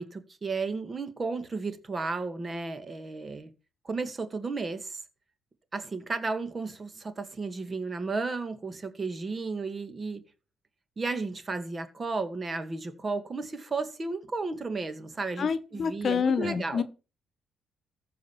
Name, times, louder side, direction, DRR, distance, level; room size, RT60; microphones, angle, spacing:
voice 1, 0.0-3.5 3.8-5.0 5.7-10.2 11.0-16.8, right 3 dB, 30° right, 2.1 m, -33 dB
voice 2, 15.4-16.8, left 6 dB, 50° left, 1.1 m, -27 dB
14.5 x 5.2 x 7.3 m
cardioid pair, 90°, 0 cm